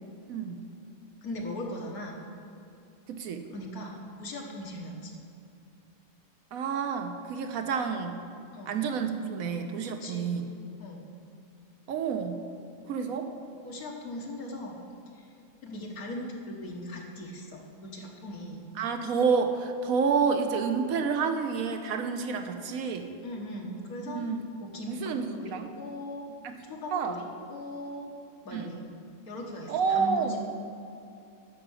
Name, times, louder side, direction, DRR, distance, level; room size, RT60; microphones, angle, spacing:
voice 1, 0.3-0.6 3.1-3.4 6.5-8.2 8.7-10.5 11.9-12.4 12.9-13.3 18.8-23.1 24.1-24.4 24.8-25.7 26.4-26.6 26.9-27.2 28.5-28.7 29.7-30.4, right 5 dB, 75° right, 7 dB, 1.3 m, -29 dB
voice 2, 1.2-2.2 3.5-5.2 8.5-8.8 10.0-10.4 10.8-11.0 13.6-14.8 15.1-15.3 15.6-18.6 23.2-24.2 24.6-26.2 26.6-28.1 28.4-28.8 29.3-30.4, left 1 dB, 80° left, -1 dB, 1.8 m, -39 dB
9.9 x 6.7 x 6.3 m, 2.6 s
omnidirectional pair, 1.5 m